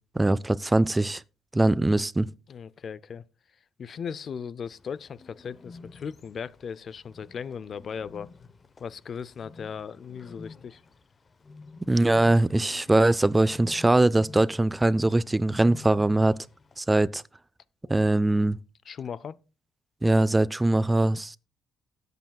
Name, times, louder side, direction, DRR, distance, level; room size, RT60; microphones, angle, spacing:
voice 1, 0.2-1.2 1.5-2.3 11.9-16.4 16.8-17.2 17.9-18.6 20.0-21.4, right 2 dB, 15° right, 0.4 m, -22 dB
voice 2, 2.5-3.2 3.8-8.3 8.8-10.8 17.9-18.0 18.9-19.4, left 7 dB, 50° left, 0.5 m, -37 dB
Bird, 4.6-16.8, left 3 dB, 35° left, 1.0 m, -50 dB
17.5 x 8.1 x 2.3 m
cardioid pair, 90°, 0 cm